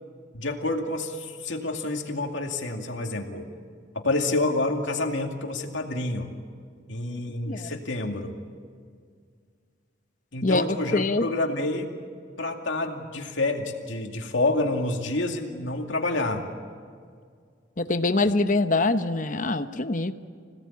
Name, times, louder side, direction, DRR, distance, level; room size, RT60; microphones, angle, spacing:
voice 1, 0.3-3.5 3.9-6.3 6.9-8.3 10.3-12.0 12.4-16.4, left 2 dB, 80° left, 3 dB, 2.4 m, -28 dB
voice 2, 10.4-11.3 17.8-20.1, left 2 dB, 40° left, 10 dB, 0.9 m, -24 dB
26.5 x 17.5 x 8.6 m, 2.1 s
head